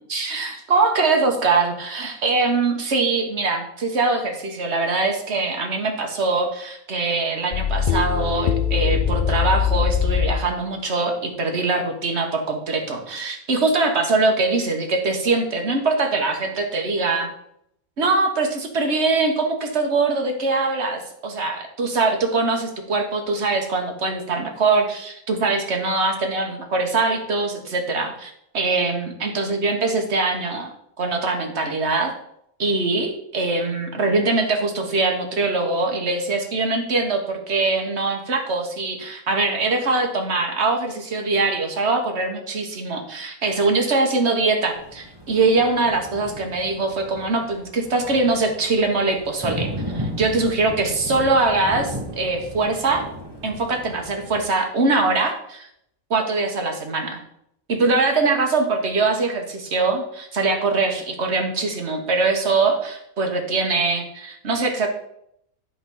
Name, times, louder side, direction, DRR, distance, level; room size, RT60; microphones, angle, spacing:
voice 1, 0.1-17.3 18.0-30.7 31.0-32.1 32.6-53.0 53.4-55.7 56.1-57.2 57.7-64.9, right 3 dB, 50° right, 4 dB, 1.5 m, -22 dB
sound 1, 7.5-10.5, left 8 dB, 55° left, 0.5 m, -21 dB
Thunder, 44.7-54.4, equal, 20° right, 1.2 m, -35 dB
11.0 x 4.0 x 5.4 m, 0.74 s
omnidirectional pair, 1.5 m